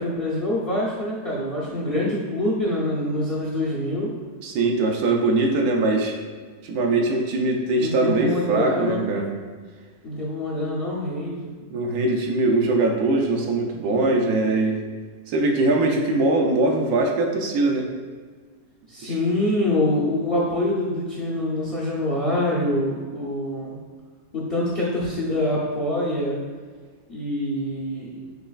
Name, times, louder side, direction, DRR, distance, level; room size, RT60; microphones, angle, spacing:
voice 1, 0.0-4.1 7.8-9.2 10.0-11.5 18.9-23.8 24.3-26.4 27.1-28.1, left 1 dB, 50° left, -5 dB, 0.8 m, -25 dB
voice 2, 4.4-6.2 6.6-9.3 11.7-14.8 15.3-17.9 19.0-19.1, right 2 dB, 75° right, 2 dB, 1.1 m, -21 dB
6.4 x 2.9 x 2.4 m, 1.5 s
omnidirectional pair, 1.7 m